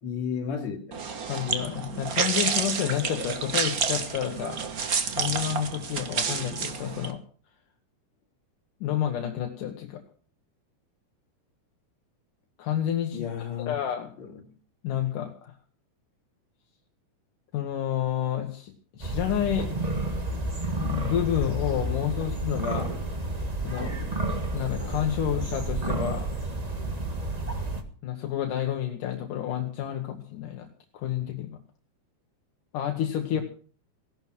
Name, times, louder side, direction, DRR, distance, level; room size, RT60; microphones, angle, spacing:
voice 1, 0.0-1.0 13.1-13.7 14.2-14.4 33.3-33.4, left 7 dB, 55° left, 3.7 m, -33 dB
sound 1, 0.9-7.1, right 5 dB, 60° right, 0.9 m, -29 dB
voice 2, 1.3-4.6 5.1-7.2 8.8-10.0 12.6-13.3 13.7-14.1 14.8-15.5 17.5-19.7 20.8-22.9 23.6-23.9 24.5-26.3 28.0-30.7 30.9-31.6 32.7-33.4, left 10 dB, 75° left, 2.8 m, -29 dB
sound 2, 18.9-19.2 19.6-21.4 21.7-23.4 23.6-25.3 25.8-26.1, equal, 10° right, 3.7 m, -43 dB
sound 3, 19.0-27.8, right 2 dB, 45° right, 0.5 m, -30 dB
16.5 x 11.5 x 6.0 m
omnidirectional pair, 3.8 m